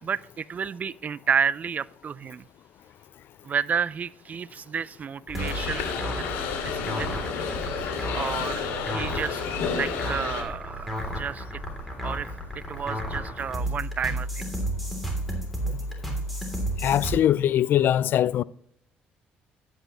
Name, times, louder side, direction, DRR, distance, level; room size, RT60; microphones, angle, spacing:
voice 1, 0.0-2.4 3.4-7.2 8.1-9.4 9.7-11.6 12.0-14.5, right 7 dB, 45° right, 0.4 m, -31 dB
sound 1, 5.3-17.1, right 1 dB, ahead, 3.3 m, -32 dB
sound 2, 5.4-10.4, left 6 dB, 85° left, 2.4 m, -31 dB
voice 2, 16.8-18.4, left 11 dB, 65° left, 0.3 m, -22 dB
11.5 x 9.2 x 3.2 m
supercardioid pair, 80°, 4 cm